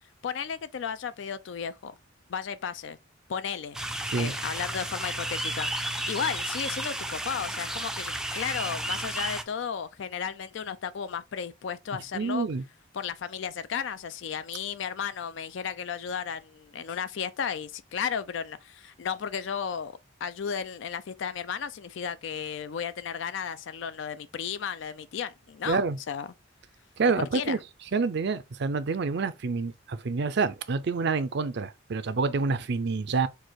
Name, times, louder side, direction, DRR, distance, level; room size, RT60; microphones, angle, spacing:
voice 1, 0.2-1.9 2.3-3.0 3.3-3.8 4.1-12.5 12.9-26.3 27.2-27.6, left 7 dB, 65° left, 0.4 m, -34 dB
sound 1, 3.7-9.4, right 1 dB, 5° right, 0.4 m, -33 dB
voice 2, 12.1-12.6 25.7-26.0 27.0-27.6 27.9-33.3, right 4 dB, 60° right, 0.5 m, -27 dB
4.7 x 2.4 x 4.2 m
head